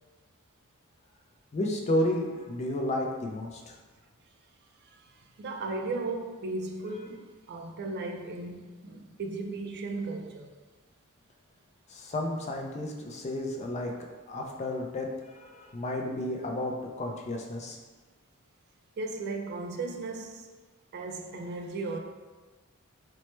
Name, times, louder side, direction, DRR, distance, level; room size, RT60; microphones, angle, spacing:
voice 1, 1.5-3.7 11.9-17.8, left 1 dB, 30° left, 0.4 m, -32 dB
voice 2, 4.9-10.5 19.0-20.5 20.9-22.0, right 3 dB, 50° right, 0.3 m, -36 dB
4.3 x 2.1 x 3.1 m
head